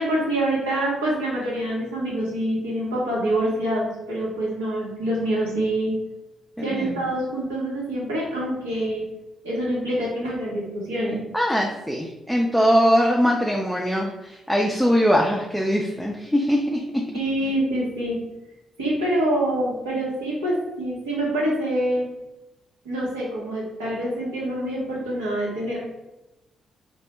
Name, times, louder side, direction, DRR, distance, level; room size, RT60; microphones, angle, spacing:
voice 1, 0.0-5.9 6.6-9.0 9.4-11.2 17.1-18.2 18.8-22.1 22.8-25.8, right 1 dB, 90° right, -6 dB, 0.8 m, -26 dB
voice 2, 6.6-7.0 11.3-17.1 17.4-17.5, equal, ahead, -1 dB, 0.4 m, -22 dB
2.2 x 2.0 x 2.9 m, 0.96 s
hypercardioid pair, 45°, 0 cm